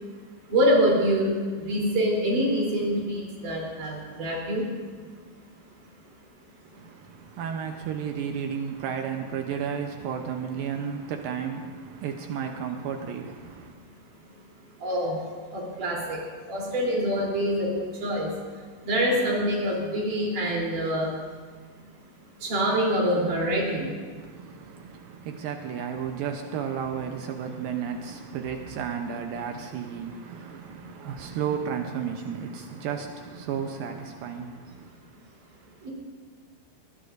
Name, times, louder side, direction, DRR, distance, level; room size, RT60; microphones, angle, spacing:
voice 1, 0.5-4.6 14.8-15.2 15.5-16.2 16.5-18.3 18.8-21.1 22.4-23.9 30.8-31.0 35.8-35.9, equal, 55° right, 5.0 m, -25 dB
voice 2, 6.7-13.7 24.2-34.9, right 7 dB, 75° right, 2.4 m, -33 dB
22.5 x 19.5 x 2.6 m
omnidirectional pair, 4.5 m